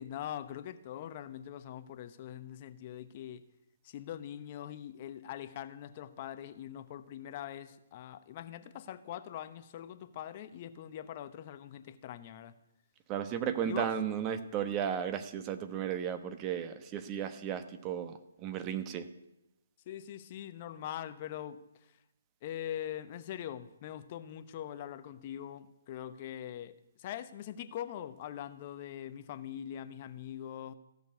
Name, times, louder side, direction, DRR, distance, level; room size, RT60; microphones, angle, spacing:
voice 1, 0.0-3.4 3.8-12.6 13.6-14.0 19.8-22.0 22.4-30.7, left 10 dB, 35° left, 11 dB, 0.9 m, -42 dB
voice 2, 13.1-19.0, right 9 dB, 25° right, 9 dB, 1.1 m, -34 dB
15.0 x 6.7 x 9.5 m, 0.91 s
figure-of-eight pair, 140°, 0 cm